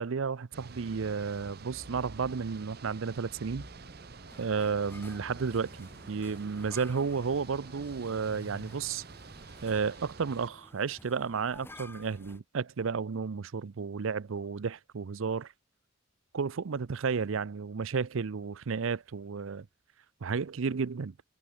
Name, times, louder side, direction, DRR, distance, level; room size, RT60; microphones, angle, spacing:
voice 1, 0.0-3.7 4.4-9.0 9.6-15.5 16.3-19.7 20.2-21.1, right 5 dB, 75° right, 0.5 m, -32 dB
sound 1, 0.5-10.5, right 4 dB, 50° right, 0.8 m, -49 dB
sound 2, 1.5-2.4 3.3-9.3, equal, 35° left, 3.8 m, -53 dB
sound 3, 4.3-12.4, left 1 dB, 10° left, 6.9 m, -54 dB
head